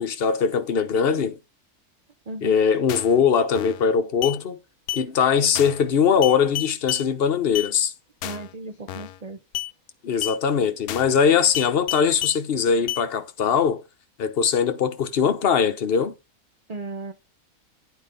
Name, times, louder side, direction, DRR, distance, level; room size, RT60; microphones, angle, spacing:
voice 1, 0.0-1.3 2.4-4.6 4.9-7.9 10.0-13.8 14.2-16.1, left 7 dB, 45° left, 1.1 m, -21 dB
voice 2, 2.3-2.6 8.2-9.4 16.7-17.1, right 2 dB, 30° right, 0.8 m, -35 dB
sound 1, 2.9-3.2 3.6-3.9 4.2-4.4 4.9-5.1 5.6-5.9 6.2-7.1 7.6-7.7 8.2-8.5 8.9-9.2 9.5-9.7 10.2-10.4 10.9-11.2 11.5-12.4 12.9-13.0, left 13 dB, 80° left, 1.2 m, -31 dB
9.0 x 5.2 x 5.3 m
omnidirectional pair, 1.6 m